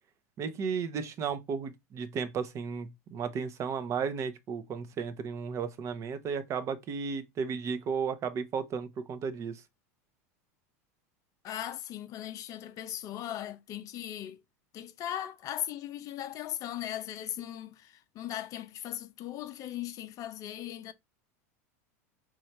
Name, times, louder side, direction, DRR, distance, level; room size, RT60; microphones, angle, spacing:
voice 1, 0.4-9.6, right 6 dB, 35° right, 0.7 m, -34 dB
voice 2, 11.4-14.4 14.7-20.9, left 12 dB, 40° left, 0.5 m, -38 dB
3.2 x 2.3 x 4.2 m
supercardioid pair, 110°, 8 cm